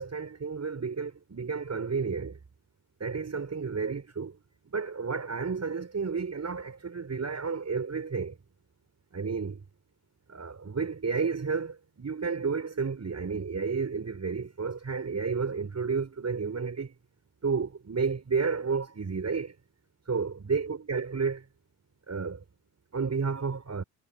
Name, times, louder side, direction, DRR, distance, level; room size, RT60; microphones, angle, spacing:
voice 1, 0.0-2.3 3.0-4.3 4.7-8.3 9.1-9.6 10.3-16.9 17.4-19.5 20.1-21.4 22.1-22.4 22.9-23.8, right 5 dB, 35° right, 7.5 m, -31 dB
hypercardioid pair, 55°, 44 cm